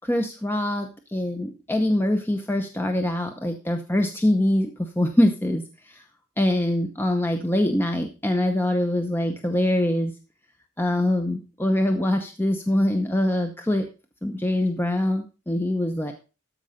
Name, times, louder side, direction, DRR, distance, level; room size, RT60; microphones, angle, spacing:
voice 1, 0.0-6.0 6.4-10.1 10.8-13.9 14.2-16.1, left 1 dB, 10° left, 5 dB, 0.7 m, -24 dB
13.0 x 5.3 x 5.0 m, 0.32 s
head